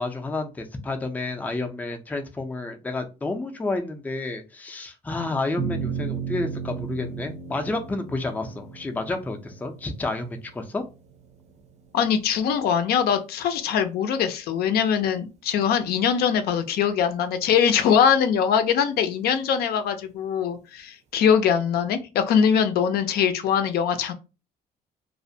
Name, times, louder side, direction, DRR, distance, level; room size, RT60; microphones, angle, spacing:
voice 1, 0.0-10.8, left 2 dB, 10° left, 4 dB, 0.4 m, -30 dB
sound 1, 5.6-12.1, right 6 dB, 40° right, 0.6 m, -35 dB
voice 2, 11.9-24.1, left 7 dB, 65° left, 8 dB, 0.4 m, -22 dB
2.4 x 2.1 x 2.6 m, 0.29 s
cardioid pair, 110°, 17 cm